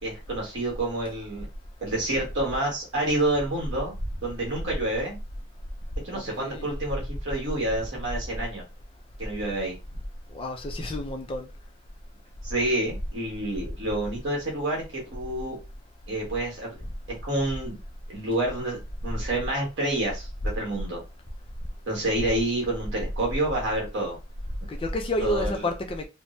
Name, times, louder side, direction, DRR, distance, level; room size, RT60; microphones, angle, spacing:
voice 1, 0.0-1.5 1.8-3.9 4.2-5.2 6.0-8.6 9.2-9.7 12.4-15.6 16.1-16.7 17.2-17.8 18.1-20.3 20.5-21.0 21.9-24.2 25.2-25.7, right 1 dB, 55° right, 1.4 m, -28 dB
voice 2, 6.1-6.7 10.3-11.5 24.7-26.1, left 1 dB, 25° left, 0.4 m, -30 dB
3.4 x 2.0 x 2.6 m
head